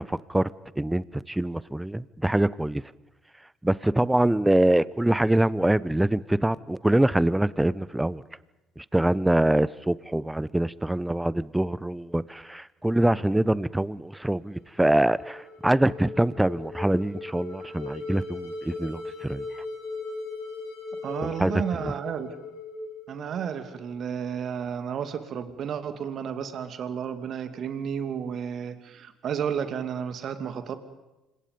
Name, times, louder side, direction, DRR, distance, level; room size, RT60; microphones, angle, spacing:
voice 1, 0.0-2.8 3.6-8.2 8.8-19.4 21.2-21.5, right 1 dB, 10° right, 20 dB, 0.9 m, -24 dB
sound 1, 14.6-23.8, left 3 dB, 75° left, 5.7 m, -38 dB
voice 2, 21.0-22.3 23.1-30.8, right 7 dB, 50° right, 9 dB, 2.5 m, -32 dB
29.5 x 26.0 x 5.4 m, 1.0 s
hypercardioid pair, 50°, 0 cm